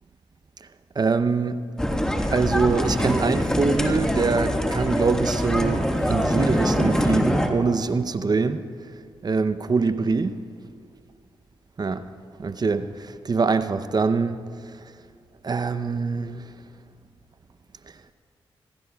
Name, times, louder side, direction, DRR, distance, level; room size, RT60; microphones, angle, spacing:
voice 1, 1.0-1.6 2.3-8.6 9.2-10.4 11.8-12.0 12.4-14.4 15.4-16.4, right 4 dB, 40° right, 12 dB, 0.7 m, -24 dB
sound 1, 1.8-7.5, equal, 5° left, 1.7 m, -23 dB
26.0 x 16.0 x 2.4 m, 2.1 s
supercardioid pair, 50°, 10 cm